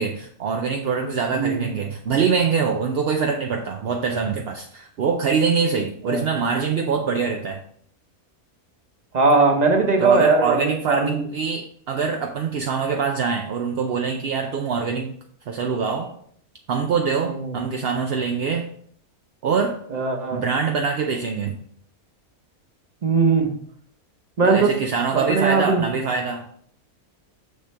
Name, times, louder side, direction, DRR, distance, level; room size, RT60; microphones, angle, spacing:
voice 1, 0.0-7.6 10.0-15.1 15.5-16.1 16.7-18.7 19.4-19.8 20.3-21.6 24.5-26.5, right 5 dB, 60° right, 3 dB, 0.7 m, -24 dB
voice 2, 1.3-1.6 6.1-6.2 9.1-11.2 17.2-17.6 19.9-20.4 23.0-23.5 24.4-24.8 25.1-25.9, right 4 dB, 30° right, 3 dB, 1.1 m, -19 dB
6.6 x 6.5 x 3.4 m, 0.62 s
omnidirectional pair, 1.5 m